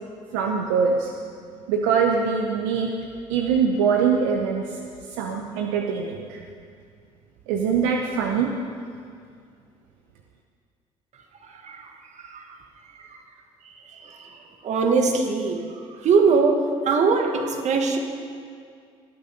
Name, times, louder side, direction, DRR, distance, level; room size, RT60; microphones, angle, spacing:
voice 1, 0.3-1.1 1.7-2.9 3.3-4.8 5.2-6.4 7.5-8.5, right 6 dB, 85° right, 2 dB, 0.9 m, -23 dB
voice 2, 14.6-15.6 16.0-16.6 16.8-18.0, right 4 dB, 55° right, 3 dB, 1.8 m, -20 dB
19.0 x 8.1 x 5.3 m, 2.2 s
supercardioid pair, 65°, 14 cm